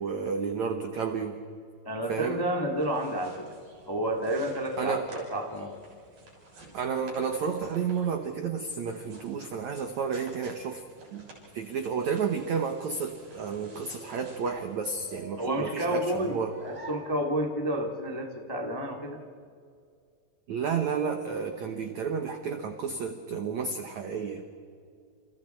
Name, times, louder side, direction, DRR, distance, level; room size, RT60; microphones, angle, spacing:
voice 1, 0.0-1.4 2.1-2.4 4.8-5.1 6.7-10.8 11.1-11.2 11.5-16.5 20.5-24.4, right 6 dB, 80° right, 6 dB, 1.6 m, -31 dB
voice 2, 1.8-3.4 3.9-5.7 15.4-19.2, right 1 dB, 30° left, 2 dB, 0.4 m, -30 dB
sound 1, 2.6-15.0, right 2 dB, 50° right, 8.2 m, -52 dB
sound 2, 13.3-17.8, right 1 dB, 5° right, 3.8 m, -49 dB
29.5 x 29.5 x 4.5 m, 2.3 s
omnidirectional pair, 5.2 m